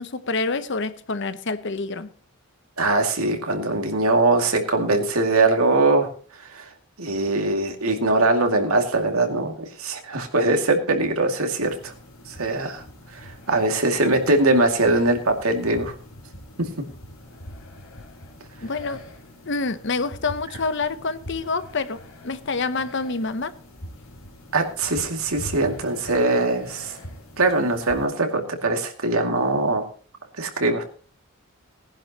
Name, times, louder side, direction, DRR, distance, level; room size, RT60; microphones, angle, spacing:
voice 1, 0.0-2.1 18.6-19.0 19.4-22.0 22.2-23.6, left 3 dB, 55° left, 0.8 m, -27 dB
voice 2, 2.8-6.1 6.5-6.7 7.0-11.9 12.3-12.8 13.1-15.9 24.5-27.0 27.4-29.9 30.4-30.8, right 2 dB, 80° right, 2.3 m, -22 dB
sound 1, 11.6-28.0, left 1 dB, 70° left, 3.4 m, -43 dB
19.0 x 10.5 x 2.9 m
head